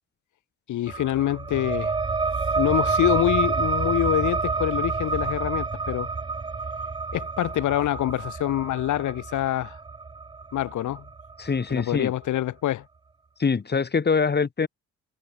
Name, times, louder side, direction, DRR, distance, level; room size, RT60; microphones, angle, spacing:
voice 1, 0.7-1.9 2.6-6.1 7.1-9.8 10.5-11.0 11.7-12.8, left 13 dB, 80° left, 3.3 m, -25 dB
sound 1, 0.9-12.0, right 4 dB, 15° right, 0.5 m, -28 dB
voice 2, 11.4-12.1 13.4-14.7, left 5 dB, 35° left, 3.1 m, -24 dB
cardioid pair, 90°, 30 cm